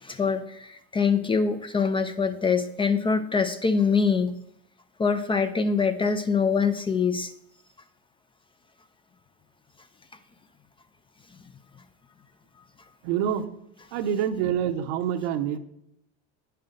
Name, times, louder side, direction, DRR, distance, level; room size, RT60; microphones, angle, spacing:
voice 1, 0.0-4.3 5.0-7.3, left 5 dB, 15° left, 10 dB, 0.3 m, -24 dB
voice 2, 13.0-13.5 13.9-15.6, right 9 dB, 75° right, 9 dB, 0.8 m, -26 dB
8.8 x 5.6 x 3.8 m, 0.77 s
supercardioid pair, 115°, 32 cm